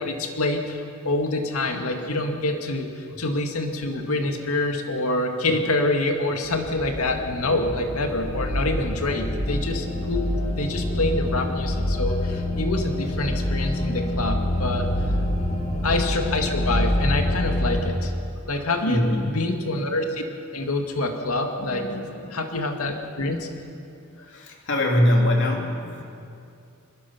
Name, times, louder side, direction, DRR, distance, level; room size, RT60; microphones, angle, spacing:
voice 1, 0.0-14.9 15.8-19.0 19.3-20.2 20.5-21.9 22.3-23.5, left 2 dB, 85° left, 4 dB, 2.2 m, -26 dB
sound 1, 6.4-17.8, left 1 dB, 30° left, 3.2 m, -26 dB
voice 2, 12.1-12.4 15.6-16.2 18.5-19.2 21.6-22.4 24.2-26.0, left 1 dB, 60° left, 1 dB, 3.0 m, -25 dB
23.0 x 21.5 x 5.9 m, 2.5 s
head